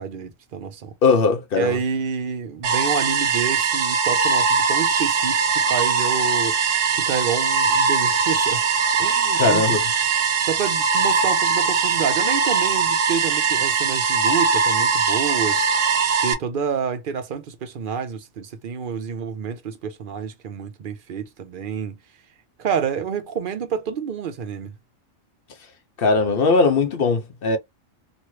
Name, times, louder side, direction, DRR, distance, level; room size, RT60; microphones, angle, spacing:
voice 1, 0.0-0.9 1.6-6.6 6.9-8.6 9.0-9.8 10.4-15.7 16.2-22.0 22.6-24.7, right 6 dB, 55° right, 0.7 m, -28 dB
voice 2, 1.0-1.8 9.4-9.9 26.0-27.6, left 4 dB, 55° left, 0.8 m, -19 dB
sound 1, 2.6-16.3, right 5 dB, 75° right, 1.1 m, -21 dB
3.0 x 2.4 x 3.1 m
omnidirectional pair, 1.3 m